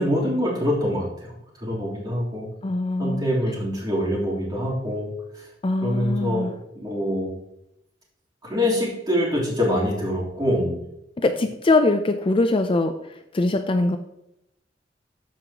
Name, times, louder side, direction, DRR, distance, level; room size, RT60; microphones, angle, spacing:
voice 1, 0.0-2.5 3.0-5.1 5.3-5.4 5.8-6.5 6.7-7.3 8.4-10.8, equal, 25° right, -6 dB, 3.4 m, -25 dB
voice 2, 2.6-3.2 5.6-6.5 11.2-12.9 13.3-14.0, left 2 dB, 30° left, 7 dB, 0.5 m, -22 dB
13.5 x 5.4 x 2.9 m, 0.84 s
head